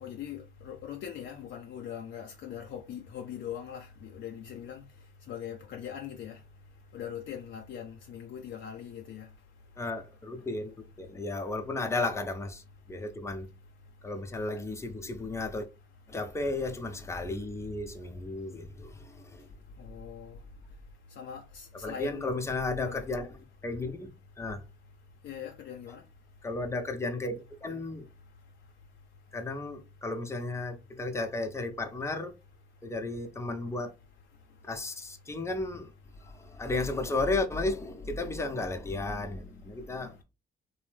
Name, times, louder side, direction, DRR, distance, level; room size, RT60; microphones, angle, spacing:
voice 1, 0.0-4.8 5.3-6.4 6.9-9.3 19.8-20.4 21.2-22.3 22.8-23.0 25.2-26.0, left 9 dB, 70° left, 0.5 m, -41 dB
voice 2, 9.8-12.6 12.9-13.5 14.0-15.7 16.1-19.5 21.8-24.1 24.4-24.6 26.4-28.1 29.3-32.3 32.8-33.9 34.6-35.9 36.2-40.2, left 2 dB, 15° left, 0.6 m, -34 dB
2.6 x 2.0 x 3.1 m
cardioid pair, 90°, 20 cm